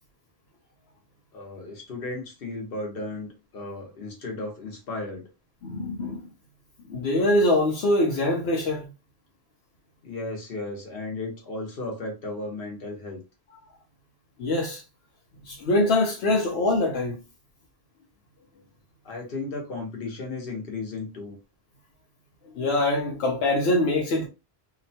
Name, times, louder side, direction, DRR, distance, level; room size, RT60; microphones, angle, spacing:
voice 1, 1.3-5.3 10.0-13.2 19.0-21.4, left 2 dB, 65° left, 1.1 m, -35 dB
voice 2, 5.6-6.3 6.9-8.9 14.4-14.8 15.5-17.2 22.6-24.3, left 1 dB, 85° left, 0.9 m, -23 dB
2.8 x 2.1 x 2.7 m
omnidirectional pair, 1.0 m